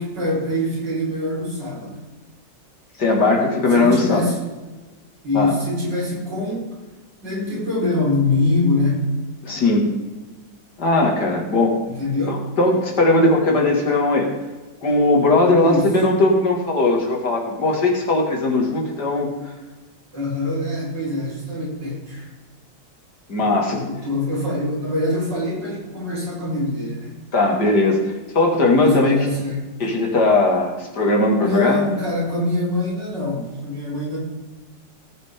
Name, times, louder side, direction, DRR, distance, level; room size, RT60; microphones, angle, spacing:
voice 1, 0.0-2.0 3.7-4.4 5.2-6.8 7.2-9.0 11.9-12.4 15.5-15.9 20.1-22.3 23.4-27.2 28.7-29.6 31.4-34.2, left 2 dB, 70° right, -6 dB, 5.5 m, -24 dB
voice 2, 3.0-4.3 5.3-5.5 9.4-9.9 10.8-11.8 12.3-14.3 14.8-19.3 23.3-23.8 27.3-29.1 29.8-31.8, left 2 dB, 60° left, 0 dB, 2.9 m, -18 dB
18.0 x 8.9 x 3.8 m, 1.2 s
omnidirectional pair, 2.0 m